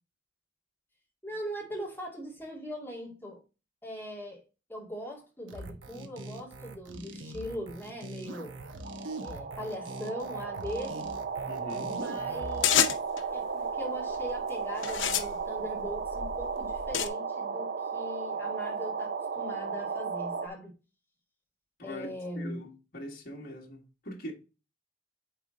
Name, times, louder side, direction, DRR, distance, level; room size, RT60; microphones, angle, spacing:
voice 1, 1.2-3.4 3.8-4.4 4.7-8.6 9.2-11.1 11.8-12.8 13.3-20.7 21.8-22.6, equal, 10° left, 2.4 m, -40 dB
sound 1, 5.5-12.9, right 2 dB, 85° right, 1.1 m, -42 dB
sound 2, 8.3-8.4 8.6-20.5, right 5 dB, 55° right, 0.6 m, -35 dB
voice 2, 11.5-12.0 21.8-22.1 22.4-24.3, equal, 50° left, 1.8 m, -42 dB
sound 3, 12.6-13.2 14.0-14.3 14.8-17.1, left 9 dB, 85° left, 0.7 m, -29 dB
8.8 x 3.6 x 3.8 m
head